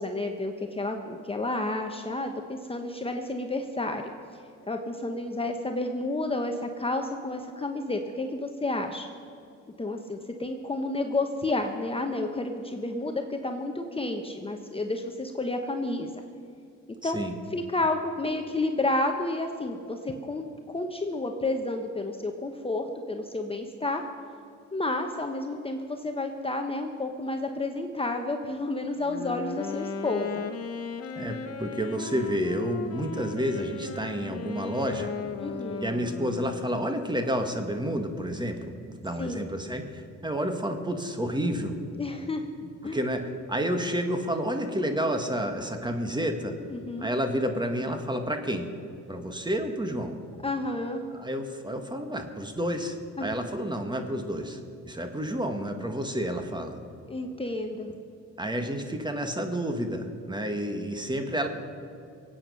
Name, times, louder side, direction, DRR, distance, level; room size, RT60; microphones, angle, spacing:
voice 1, 0.0-4.0 4.7-9.0 9.8-16.1 17.0-17.2 17.5-24.1 24.7-30.5 35.4-35.9 39.2-39.5 42.0-42.4 42.8-43.0 46.7-47.1 50.4-51.0 53.2-53.3 57.1-57.9, left 2 dB, 20° left, 4 dB, 1.1 m, -31 dB
voice 2, 17.0-17.3 31.2-35.1 35.8-41.8 42.9-46.6 47.0-48.7 49.1-50.1 51.1-54.6 54.9-56.8 58.4-61.5, equal, 15° right, 5 dB, 1.7 m, -30 dB
Wind instrument woodwind instrument, 29.0-37.1, left 5 dB, 50° left, 1.2 m, -36 dB
22.5 x 8.9 x 6.4 m, 2.4 s
cardioid pair, 90°, 30 cm